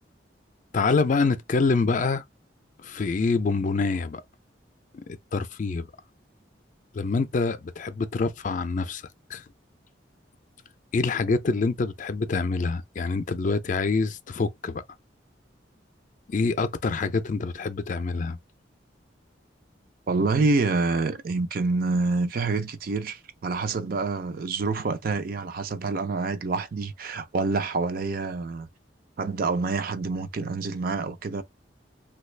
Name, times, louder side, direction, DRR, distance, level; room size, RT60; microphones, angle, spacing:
voice 1, 0.7-2.2 2.8-4.2 5.3-5.9 6.9-9.0 9.3-9.4 10.9-14.8 16.3-18.4, left 4 dB, 45° left, 0.4 m, -26 dB
voice 2, 20.1-28.7 29.2-31.4, right 3 dB, 55° right, 0.4 m, -27 dB
3.2 x 2.3 x 3.2 m
head